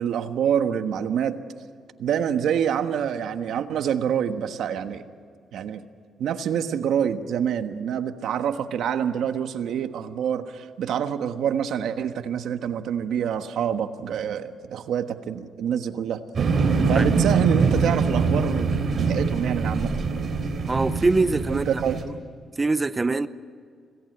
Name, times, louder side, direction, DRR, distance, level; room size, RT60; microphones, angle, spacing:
voice 1, 0.0-1.4 2.0-5.0 5.5-5.8 6.2-16.2 16.9-18.7 19.1-19.9 21.5-22.0, right 8 dB, 80° right, 1.4 m, -26 dB
sound 1, 16.3-22.0, right 4 dB, 45° right, 3.5 m, -23 dB
voice 2, 20.6-21.8 22.6-23.3, right 3 dB, 20° right, 0.7 m, -23 dB
26.5 x 18.5 x 8.1 m
cardioid pair, 130°, 0 cm